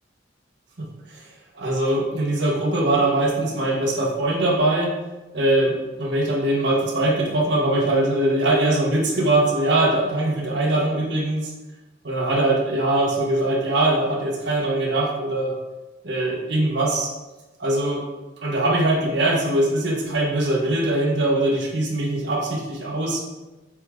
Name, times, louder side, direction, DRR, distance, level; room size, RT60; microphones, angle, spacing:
voice 1, 0.8-1.3 1.5-4.9 5.3-11.5 12.0-15.5 16.0-17.1 17.6-18.0 18.4-23.2, right 1 dB, 65° right, -1 dB, 1.3 m, -22 dB
8.0 x 3.6 x 3.7 m, 1.1 s
head